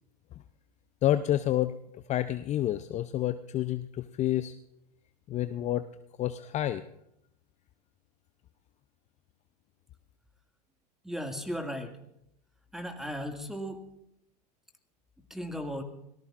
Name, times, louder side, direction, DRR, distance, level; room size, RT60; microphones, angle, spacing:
voice 1, 1.0-1.7 2.1-4.5 5.3-5.8 6.2-6.8, left 13 dB, 35° left, 11 dB, 0.6 m, -28 dB
voice 2, 11.0-11.9 12.7-13.8 15.3-15.8, equal, ahead, 4 dB, 2.1 m, -36 dB
25.0 x 18.5 x 2.5 m, 0.78 s
hypercardioid pair, 95°, 21 cm